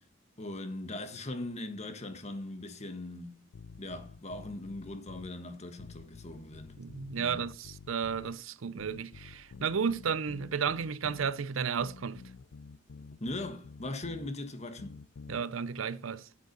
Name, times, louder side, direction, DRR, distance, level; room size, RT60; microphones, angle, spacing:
voice 1, 0.4-3.4 3.8-6.8 7.1-7.5 13.2-15.0, left 2 dB, 35° left, 1.4 m, -40 dB
sound 1, 3.5-5.3 5.8-8.4 8.8-11.3 11.8-14.3 14.8-15.4, left 5 dB, 90° left, 0.5 m, -49 dB
voice 2, 6.8-12.2 15.3-16.3, right 6 dB, 70° right, 0.6 m, -33 dB
9.6 x 7.8 x 5.2 m
head